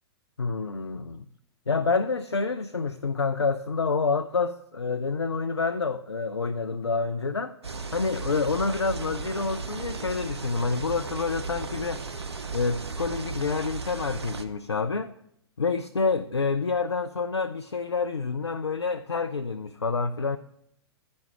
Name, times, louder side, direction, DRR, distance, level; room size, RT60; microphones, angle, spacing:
voice 1, 0.4-1.2 1.7-7.5 7.9-12.0 12.5-15.1 15.6-20.4, left 4 dB, 85° left, 0.4 m, -28 dB
sound 1, 7.6-14.4, right 4 dB, 75° right, 0.7 m, -35 dB
10.5 x 5.2 x 5.7 m
figure-of-eight pair, 105°, 14 cm